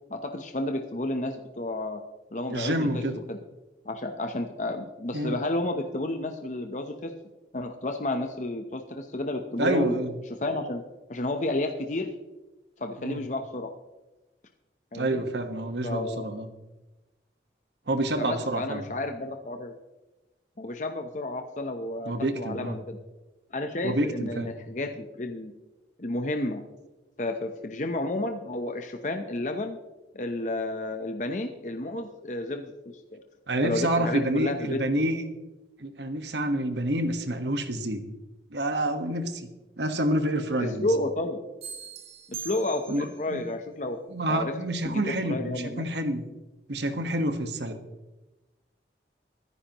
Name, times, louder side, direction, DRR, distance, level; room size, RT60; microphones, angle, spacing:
voice 1, 0.1-2.0 2.3-2.9 3.3-3.4 3.8-7.1 7.5-9.9 10.4-10.8 11.1-12.1 12.8-13.7 14.9-15.2 15.8-16.3 18.2-19.7 20.6-23.0 23.5-25.5 26.0-26.6 27.2-29.8 30.1-33.2 33.6-34.8 40.6-41.4 42.3-44.0 44.3-44.5 44.8-45.9, left 2 dB, 45° left, 5 dB, 0.8 m, -31 dB
voice 2, 2.5-3.1 5.1-5.4 9.6-10.1 13.0-13.2 14.9-16.5 17.9-18.8 22.0-22.8 23.8-24.5 33.5-35.2 35.8-38.0 38.5-39.5 39.8-40.9 42.9-43.4 44.1-46.2 46.7-47.8, right 1 dB, 80° right, 7 dB, 1.4 m, -28 dB
sound 1, 41.6-43.3, right 6 dB, 35° right, 1.6 m, -41 dB
24.5 x 10.0 x 3.0 m, 1.1 s
head